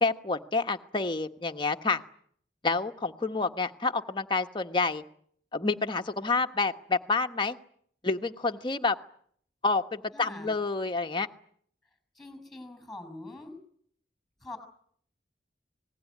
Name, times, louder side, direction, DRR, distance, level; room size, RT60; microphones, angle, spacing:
voice 1, 0.0-2.0 2.6-5.0 5.5-7.6 8.0-9.0 9.6-11.3, left 3 dB, 25° left, 5 dB, 1.2 m, -28 dB
voice 2, 10.1-10.5 12.1-13.6 14.4-14.6, left 2 dB, ahead, 10 dB, 6.5 m, -43 dB
26.0 x 20.0 x 9.5 m, 0.65 s
head